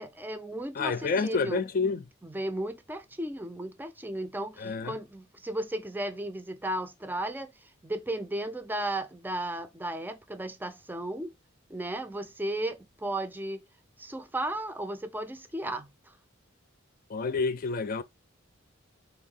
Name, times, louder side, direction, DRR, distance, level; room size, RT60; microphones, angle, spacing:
voice 1, 0.0-1.6 2.2-11.3 11.7-13.6 14.0-16.1, right 1 dB, 10° right, 0.5 m, -35 dB
voice 2, 0.8-2.0 4.6-5.0 17.1-18.0, left 4 dB, 45° left, 0.4 m, -28 dB
4.6 x 2.7 x 3.8 m
head